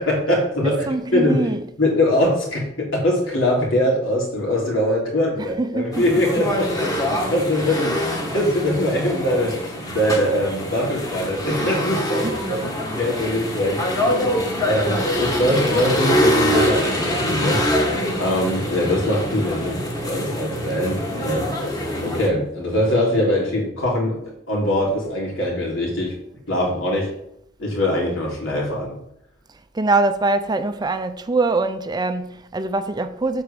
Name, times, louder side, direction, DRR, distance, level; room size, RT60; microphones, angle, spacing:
voice 1, 0.0-1.4 1.8-12.7 13.0-13.9 14.6-24.2 24.5-26.1 26.5-27.1 27.6-29.0, left 1 dB, 85° left, 3.2 m, -22 dB
voice 2, 0.6-1.6 5.4-6.0 6.8-6.9 12.2-12.6 13.2-13.3 29.7-33.4, right 3 dB, 20° right, 0.5 m, -23 dB
sound 1, 5.9-22.3, equal, 20° left, 1.6 m, -24 dB
8.0 x 4.5 x 6.9 m
head